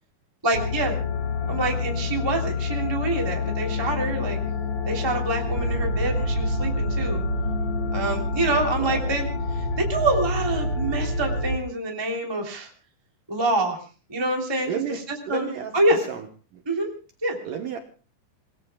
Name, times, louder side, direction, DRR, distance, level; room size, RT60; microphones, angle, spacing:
voice 1, 0.4-1.0 1.5-4.4 4.9-7.2 7.9-9.3 9.5-12.7 13.3-13.8 14.1-16.0 16.6-16.9 17.2-17.4, right 2 dB, 5° right, 1 dB, 2.4 m, -26 dB
sound 1, 0.5-11.6, left 2 dB, 45° left, 1.6 m, -27 dB
voice 2, 8.4-9.2 14.7-15.0 15.3-15.7 16.1-16.2 17.5-17.8, right 9 dB, 70° right, 5 dB, 2.1 m, -32 dB
28.5 x 19.5 x 2.3 m, 0.35 s
omnidirectional pair, 5.1 m